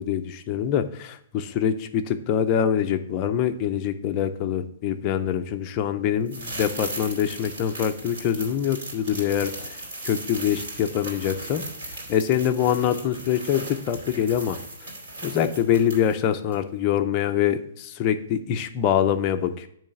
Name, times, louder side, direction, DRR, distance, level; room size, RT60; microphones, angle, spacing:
voice 1, 0.0-9.5 10.0-14.6 15.2-19.7, left 9 dB, 20° left, 6 dB, 0.4 m, -24 dB
sound 1, 6.3-16.2 16.5-16.6, right 1 dB, 55° right, 2.4 m, -37 dB
8.7 x 3.2 x 6.6 m, 0.72 s
hypercardioid pair, 180°, 0 cm